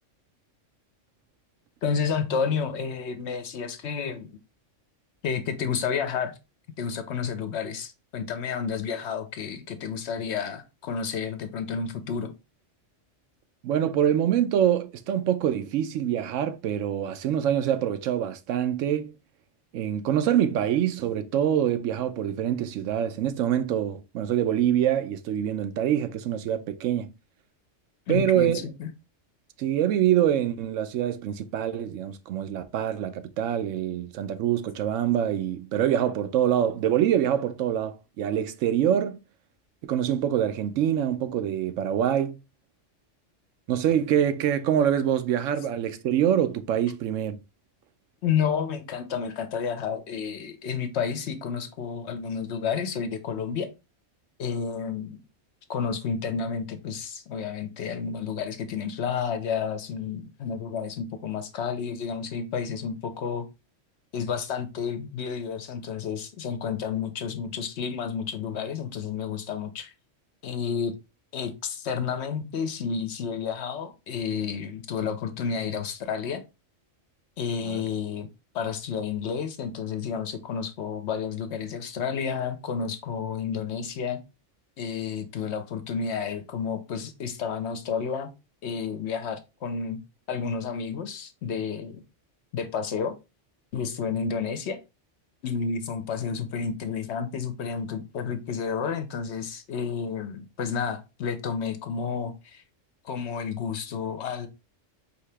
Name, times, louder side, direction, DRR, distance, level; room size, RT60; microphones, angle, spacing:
voice 1, 1.8-4.3 5.2-6.3 6.8-12.3 28.1-28.9 48.2-53.7 54.4-55.2 55.7-63.5 64.1-69.9 70.4-70.9 71.3-76.4 77.4-78.3 78.5-84.2 84.8-88.3 88.6-90.0 90.3-92.0 92.5-93.2 93.7-94.8 95.4-102.6 103.0-104.5, left 6 dB, 65° left, 0.9 m, -31 dB
voice 2, 13.6-19.1 19.7-27.1 28.1-28.7 29.6-39.2 39.8-42.4 43.7-47.4 77.6-77.8, right 10 dB, 85° right, 0.9 m, -25 dB
4.8 x 2.8 x 3.2 m
omnidirectional pair, 1.3 m